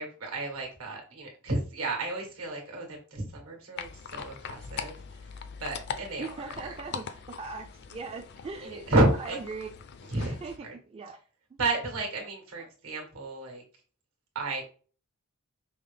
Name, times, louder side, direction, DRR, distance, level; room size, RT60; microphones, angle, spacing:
voice 1, 0.0-4.9 5.6-6.7 8.6-9.4 10.1-10.4 10.6-10.7 11.6-13.6 14.3-14.7, right 2 dB, 80° right, 2 dB, 1.5 m, -31 dB
sound 1, 3.8-10.6, left 6 dB, 50° left, 0.4 m, -41 dB
voice 2, 6.2-7.0 7.4-8.9 9.2-9.7 10.3-11.2 11.5-11.6 12.6-12.7, right 4 dB, 30° right, 4 dB, 0.3 m, -40 dB
5.5 x 2.0 x 3.3 m, 0.38 s
head